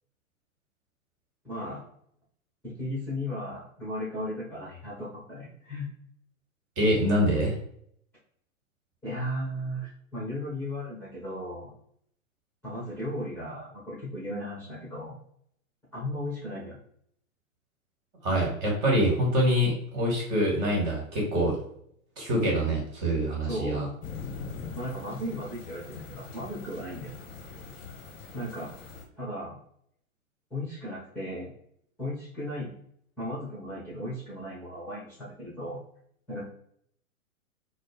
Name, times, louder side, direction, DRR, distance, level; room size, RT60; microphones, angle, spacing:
voice 1, 1.4-1.8 2.6-5.9 9.0-11.7 12.6-15.2 15.9-16.8 23.5-23.9 24.7-27.2 28.3-28.7 29.2-29.6 30.5-31.5 32.0-32.7 33.2-35.8 36.3-36.4, equal, 5° left, -7 dB, 0.9 m, -36 dB
voice 2, 6.8-7.5 18.2-21.5 22.2-23.9, equal, 30° right, -2 dB, 1.4 m, -25 dB
sound 1, 24.0-29.0, left 4 dB, 30° left, 0.9 m, -42 dB
4.2 x 2.1 x 3.1 m, 0.67 s
figure-of-eight pair, 115°, 42 cm